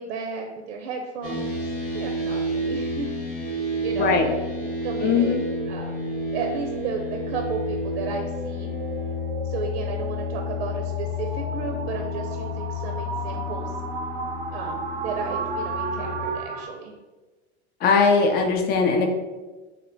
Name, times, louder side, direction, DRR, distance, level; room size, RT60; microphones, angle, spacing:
voice 1, 0.0-1.7 1.9-4.2 4.8-5.4 5.7-5.9 6.3-8.8 9.4-13.7 14.5-16.9, right 4 dB, 80° right, 3 dB, 0.6 m, -33 dB
sound 1, 1.2-16.3, left 1 dB, 75° left, 1.2 m, -30 dB
sound 2, 3.4-16.7, right 4 dB, 25° right, 0.4 m, -35 dB
voice 2, 4.0-4.3 5.0-5.5 17.8-19.1, left 5 dB, 30° left, 3 dB, 0.5 m, -20 dB
3.0 x 2.2 x 3.9 m, 1.2 s
supercardioid pair, 120°, 33 cm